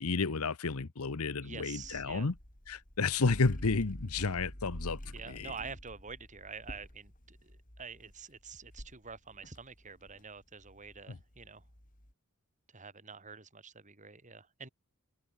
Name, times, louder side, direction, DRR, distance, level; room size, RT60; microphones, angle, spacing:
voice 1, 0.0-2.3 2.7-5.0 5.3-5.5 11.1-11.2, left 4 dB, 75° left, 1.0 m, -31 dB
voice 2, 1.4-2.3 5.1-11.6 12.7-14.7, right 5 dB, 35° right, 3.2 m, -47 dB
sound 1, 1.8-12.1, equal, 40° left, 3.8 m, -48 dB
head